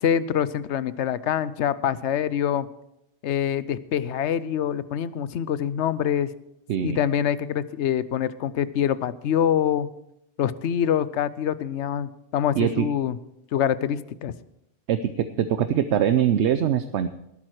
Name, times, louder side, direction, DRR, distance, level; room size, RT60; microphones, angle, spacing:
voice 1, 0.0-2.7 3.2-6.3 6.8-9.9 10.4-13.2 13.5-14.3, left 9 dB, 80° left, 16 dB, 0.9 m, -25 dB
voice 2, 6.7-7.0 12.6-12.9 14.9-17.1, right 9 dB, 75° right, 11 dB, 0.9 m, -23 dB
18.5 x 8.8 x 4.7 m, 0.83 s
omnidirectional pair, 1.2 m